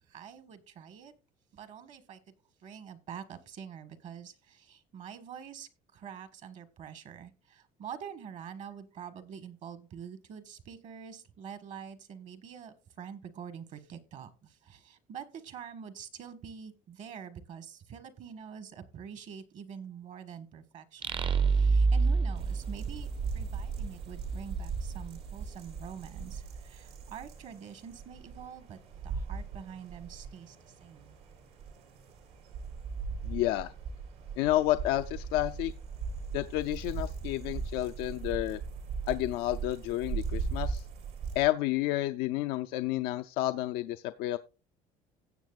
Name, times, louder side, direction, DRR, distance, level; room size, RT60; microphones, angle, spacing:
voice 1, 0.1-1.1 1.5-2.2 2.6-23.1 23.3-28.8 29.0-31.2, right 7 dB, 55° right, 11 dB, 1.4 m, -46 dB
sound 1, 21.0-23.7, right 4 dB, 35° right, 0.6 m, -26 dB
sound 2, 22.3-41.4, right 5 dB, 85° right, 4.0 m, -39 dB
voice 2, 33.2-33.7 34.4-35.7 36.3-38.6 39.1-40.8 41.4-44.4, left 15 dB, 85° left, 8 dB, 0.5 m, -30 dB
17.0 x 7.3 x 2.4 m, 0.32 s
cardioid pair, 130°, 15 cm